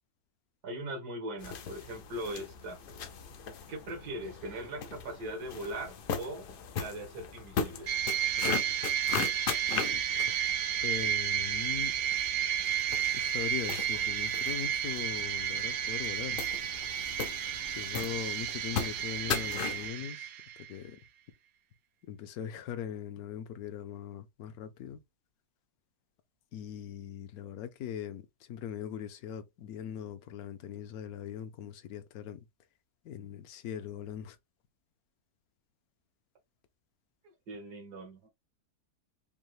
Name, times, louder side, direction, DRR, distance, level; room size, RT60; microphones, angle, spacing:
voice 1, 0.6-2.8 3.7-7.9 37.5-38.3, right 1 dB, 85° right, 1.9 m, -40 dB
sound 1, 1.4-19.9, left 6 dB, 90° left, 0.4 m, -39 dB
sound 2, 7.9-20.7, right 10 dB, 65° right, 0.7 m, -32 dB
voice 2, 9.7-10.0 10.8-11.9 13.1-16.4 17.8-20.3 20.7-21.0 22.1-25.0 26.5-32.4 33.0-34.4, left 9 dB, 70° left, 1.1 m, -40 dB
5.4 x 2.1 x 3.1 m
omnidirectional pair, 1.7 m